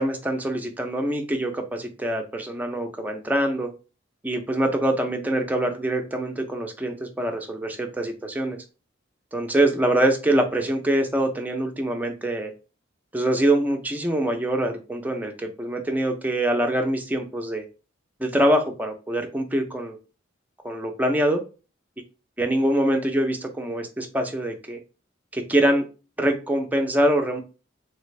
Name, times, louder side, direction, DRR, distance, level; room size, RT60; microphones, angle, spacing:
voice 1, 0.0-3.7 4.2-8.6 9.3-12.5 13.1-17.6 18.2-20.0 20.6-21.4 22.4-24.8 25.3-25.8 26.2-27.4, right 1 dB, 10° right, 4 dB, 0.4 m, -24 dB
3.3 x 2.4 x 3.1 m, 0.33 s
head